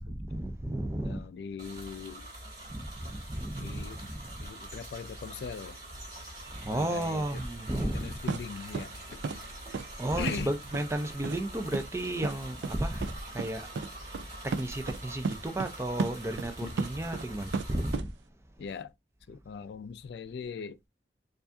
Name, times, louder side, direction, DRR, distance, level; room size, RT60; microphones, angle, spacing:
voice 1, 0.1-1.2 2.7-4.3 6.5-8.2 10.0-13.7 14.4-18.1, right 1 dB, 15° right, 0.5 m, -33 dB
voice 2, 1.0-2.3 3.5-4.1 4.4-5.8 6.7-7.4 7.7-9.2 10.2-10.5 16.6-16.9 18.6-18.9 19.3-20.8, left 6 dB, 70° left, 0.3 m, -40 dB
sound 1, 1.6-18.0, right 1 dB, 30° right, 2.1 m, -45 dB
sound 2, 8.3-8.4 8.7-8.9 9.2-9.4 9.7-9.9 10.3-10.4 10.7-10.8 11.2-11.4 11.7-11.8 12.2-12.3 12.6-12.7 13.0-13.1 13.4-13.5 13.8-13.9 14.1-14.2 14.5-15.0 15.2-15.7 16.0-17.2 17.5-18.1, right 4 dB, 80° right, 0.4 m, -32 dB
4.6 x 2.5 x 2.6 m
head